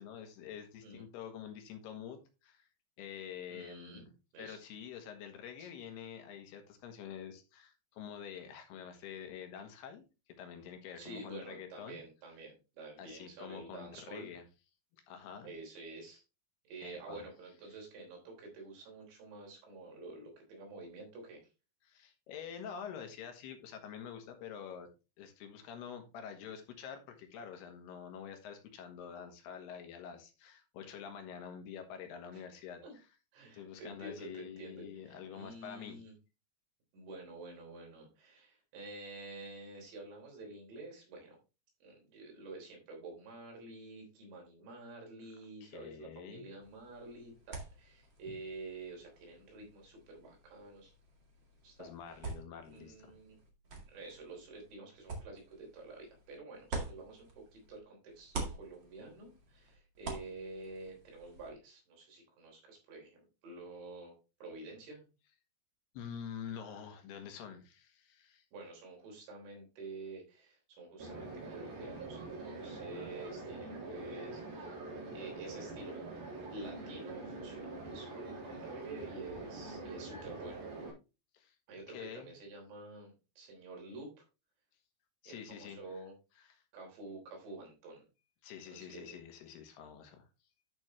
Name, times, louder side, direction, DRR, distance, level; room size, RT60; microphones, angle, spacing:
voice 1, 0.0-2.7 3.0-4.1 4.4-10.1 10.4-12.0 13.0-14.4 15.1-15.5 16.8-17.2 21.8-24.9 25.2-32.8 33.5-36.0 45.6-46.5 51.8-53.1 65.9-68.4 81.3-81.5 81.9-82.3 85.2-85.8 88.4-90.3, left 8 dB, 75° left, 5 dB, 3.2 m, -47 dB
voice 2, 3.5-4.1 4.3-4.6 5.6-5.7 10.9-14.3 15.4-16.2 16.7-21.4 32.3-32.4 32.8-32.9 33.3-36.1 36.9-41.4 41.8-50.9 51.6-52.2 52.6-53.4 53.9-64.2 64.4-65.0 68.5-74.8 75.1-76.0 76.5-80.7 81.7-84.2 85.3-86.2 86.7-88.0 88.7-89.2, right 3 dB, 85° right, 0 dB, 5.8 m, -49 dB
sound 1, 46.6-57.8 58.1-61.5, right 3 dB, 40° right, 1.7 m, -47 dB
sound 2, 71.0-80.9, right 2 dB, 60° right, 5.2 m, -44 dB
11.0 x 6.1 x 3.1 m, 0.29 s
omnidirectional pair, 4.9 m